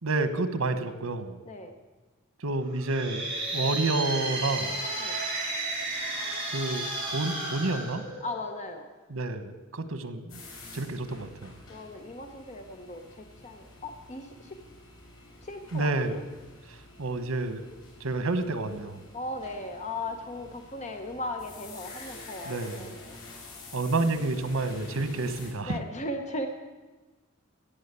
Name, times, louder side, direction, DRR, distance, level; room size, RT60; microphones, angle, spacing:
voice 1, 0.0-1.4 2.4-4.8 6.5-8.0 9.1-10.4 10.7-11.5 15.7-16.3 16.7-17.6 18.0-19.0 22.4-22.9 23.7-25.8, right 2 dB, 85° right, 10 dB, 1.2 m, -29 dB
sound 1, 2.7-8.7, right 2 dB, 25° right, 6.0 m, -33 dB
voice 2, 8.2-8.9 11.7-14.6 15.4-16.2 19.1-23.2 25.7-26.5, left 1 dB, 35° left, 5 dB, 1.0 m, -37 dB
sound 2, 10.3-25.5, left 2 dB, 85° left, 4.6 m, -49 dB
16.0 x 7.2 x 8.2 m, 1.2 s
head